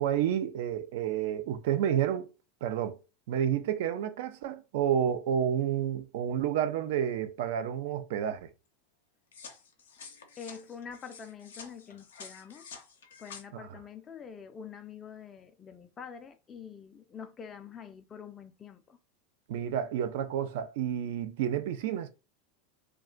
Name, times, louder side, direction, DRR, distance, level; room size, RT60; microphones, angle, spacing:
voice 1, 0.0-2.3 2.6-3.0 3.3-8.5 13.5-13.7 19.5-22.1, right 9 dB, 65° right, 0.4 m, -30 dB
sound 1, 9.3-13.4, left 6 dB, 80° left, 0.6 m, -49 dB
voice 2, 10.4-12.7 13.2-19.0, left 7 dB, 30° left, 0.4 m, -46 dB
2.3 x 2.3 x 3.7 m
hypercardioid pair, 90°, 0 cm